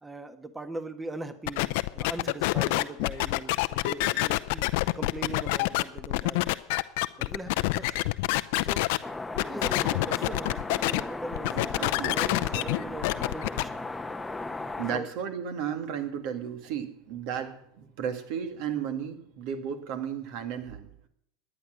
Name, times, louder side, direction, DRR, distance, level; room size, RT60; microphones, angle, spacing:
voice 1, 0.0-4.7 4.9-6.4 7.2-8.1 8.6-11.7 11.9-13.8 14.9-15.1, right 2 dB, 15° right, 1.3 m, -40 dB
sound 1, 1.5-9.0 9.4-11.0 11.3-13.6, left 21 dB, 60° left, 0.7 m, -27 dB
sound 2, 9.0-15.0, left 2 dB, 10° left, 0.9 m, -36 dB
voice 2, 11.5-13.0 14.8-21.1, right 8 dB, 55° right, 2.1 m, -34 dB
18.0 x 10.5 x 6.4 m
figure-of-eight pair, 80°, 0 cm